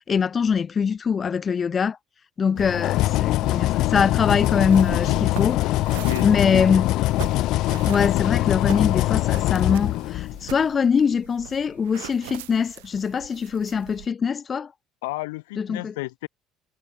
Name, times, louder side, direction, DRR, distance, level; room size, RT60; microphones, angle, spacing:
voice 1, 0.1-2.0 2.4-5.6 6.2-6.9 7.9-14.7 15.6-15.9, left 6 dB, 35° left, 0.7 m, -23 dB
sound 1, 2.6-10.5, left 17 dB, 70° left, 0.4 m, -23 dB
sound 2, 4.3-14.1, right 22 dB, 90° right, 2.0 m, -40 dB
voice 2, 6.0-6.7 15.0-16.3, left 22 dB, 90° left, 3.1 m, -32 dB
supercardioid pair, 85°, 0 cm